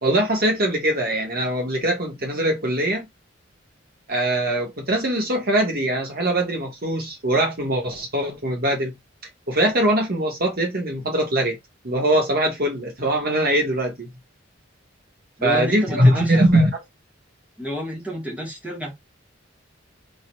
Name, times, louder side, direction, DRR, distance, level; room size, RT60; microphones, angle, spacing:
voice 1, 0.0-3.1 4.1-8.9 9.5-11.6 11.8-14.1 15.4-16.8, right 1 dB, 50° right, 1.8 m, -21 dB
voice 2, 15.4-16.3 17.6-19.0, equal, 5° right, 1.9 m, -30 dB
4.2 x 4.0 x 2.6 m
head